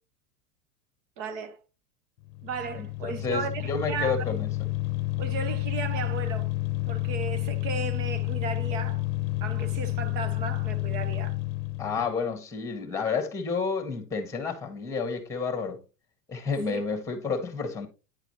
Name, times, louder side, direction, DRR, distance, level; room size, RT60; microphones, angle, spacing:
voice 1, 1.2-1.6 2.4-4.4 5.2-6.5 6.9-9.1 9.4-11.4 12.0-12.1 16.6-16.8, right 5 dB, 55° right, 1.4 m, -35 dB
sound 1, 2.2-12.1, left 18 dB, 35° left, 0.8 m, -30 dB
voice 2, 2.8-4.5 11.8-15.8 16.3-17.9, left 5 dB, 5° left, 1.8 m, -30 dB
9.8 x 4.9 x 3.1 m
supercardioid pair, 140°, 46 cm